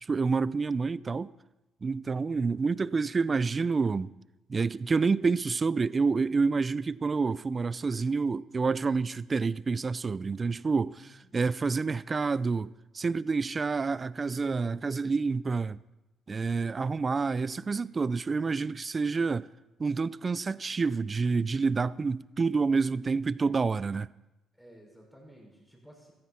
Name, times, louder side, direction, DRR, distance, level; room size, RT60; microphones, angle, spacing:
voice 1, 0.0-1.3 1.8-4.1 4.5-11.0 11.3-15.8 16.3-19.5 19.8-24.1, right 4 dB, 35° right, 0.4 m, -28 dB
voice 2, 11.0-11.4 24.5-26.1, equal, 5° left, 5.9 m, -54 dB
15.5 x 14.5 x 4.3 m
cardioid pair, 80°, 0 cm